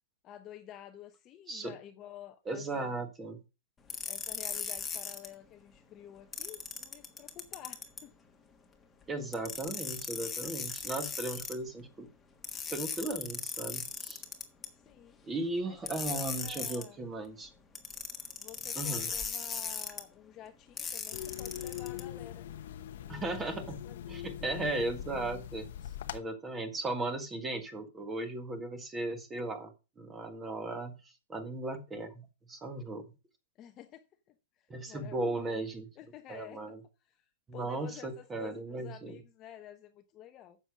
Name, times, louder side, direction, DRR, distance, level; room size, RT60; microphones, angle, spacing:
voice 1, 0.2-2.9 4.1-8.1 14.7-15.2 15.7-17.0 18.4-22.5 23.0-24.1 33.6-34.4 34.8-35.7 36.0-36.6 37.1-37.2 37.5-40.6, left 11 dB, 25° left, 0.9 m, -51 dB
voice 2, 2.5-3.4 9.1-12.1 12.7-14.2 15.2-17.5 18.8-19.1 23.1-23.8 24.1-25.7 26.1-29.7 30.0-33.0 34.7-35.9 36.3-36.8 37.5-39.2, right 2 dB, 15° right, 1.7 m, -36 dB
sound 1, 3.9-5.3 6.3-8.0 9.3-11.6 12.4-14.7 15.9-16.9 17.8-20.0 20.8-22.0, left 5 dB, 10° left, 1.4 m, -38 dB
sound 2, 21.1-26.2, left 11 dB, 60° left, 1.0 m, -42 dB
9.8 x 6.8 x 4.9 m
hypercardioid pair, 140°, 0 cm